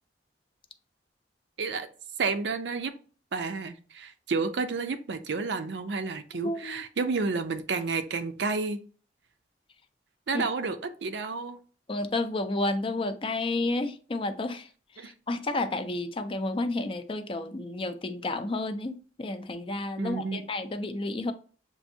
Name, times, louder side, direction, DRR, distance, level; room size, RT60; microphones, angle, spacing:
voice 1, 2.2-2.9 3.3-8.8 10.3-11.6 15.0-15.1 20.0-20.4, right 4 dB, 75° right, 0.5 m, -30 dB
voice 2, 6.3-6.8 10.3-10.4 11.9-14.7 15.0-21.3, left 2 dB, 30° left, 0.4 m, -31 dB
6.9 x 2.6 x 2.6 m
head